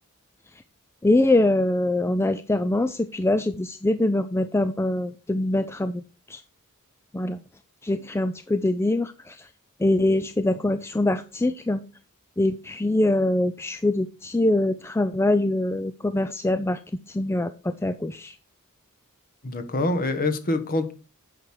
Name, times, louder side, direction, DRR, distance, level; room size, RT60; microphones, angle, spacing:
voice 1, 1.0-6.4 7.1-7.4 7.8-9.5 9.8-11.8 12.4-16.8 17.1-18.4, left 1 dB, 10° left, 0.4 m, -24 dB
voice 2, 19.4-20.9, left 2 dB, 40° left, 1.3 m, -25 dB
9.1 x 6.0 x 4.8 m
head